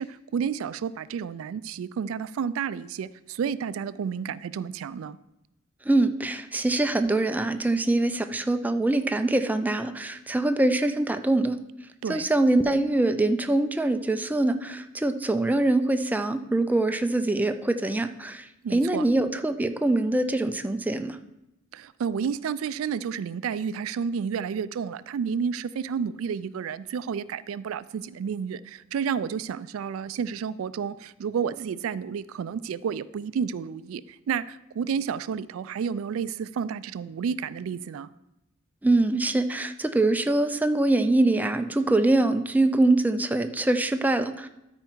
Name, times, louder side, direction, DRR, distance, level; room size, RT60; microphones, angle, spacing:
voice 1, 0.0-5.2 12.0-12.3 18.6-19.1 21.7-38.1, right 7 dB, 90° right, 0.3 m, -31 dB
voice 2, 5.9-11.6 12.1-18.5 18.7-21.2 38.8-44.5, right 2 dB, 10° right, 0.4 m, -24 dB
13.0 x 4.4 x 4.5 m
head